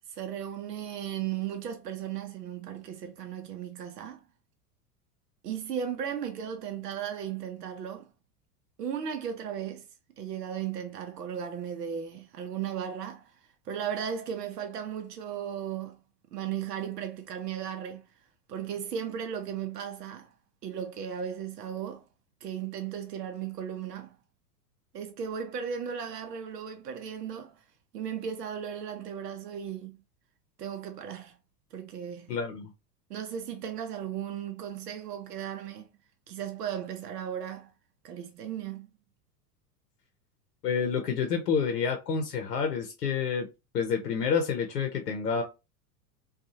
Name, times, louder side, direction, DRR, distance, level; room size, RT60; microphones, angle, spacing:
voice 1, 0.1-4.2 5.4-8.1 8.8-9.8 10.2-13.3 13.7-16.0 16.3-18.1 18.5-20.3 20.6-22.0 22.4-24.2 24.9-27.6 27.9-30.0 30.6-31.4 31.7-32.4 33.1-35.9 36.3-37.7 38.0-38.9, right 8 dB, 80° right, 0.6 m, -36 dB
voice 2, 32.3-32.7 40.6-43.5 43.7-45.4, left 6 dB, 80° left, 0.7 m, -28 dB
2.7 x 2.3 x 2.6 m
figure-of-eight pair, 85°, 47 cm